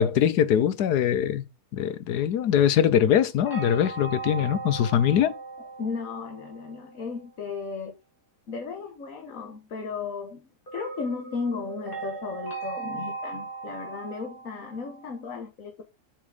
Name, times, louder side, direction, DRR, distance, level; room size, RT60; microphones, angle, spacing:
voice 1, 0.0-1.4 1.7-5.3, left 9 dB, 75° left, 1.4 m, -22 dB
sound 1, 3.5-7.1 10.7-15.2, right 4 dB, 30° left, 2.9 m, -38 dB
voice 2, 5.6-7.9 8.5-15.8, left 5 dB, 55° left, 1.8 m, -35 dB
8.1 x 6.4 x 4.9 m
omnidirectional pair, 1.7 m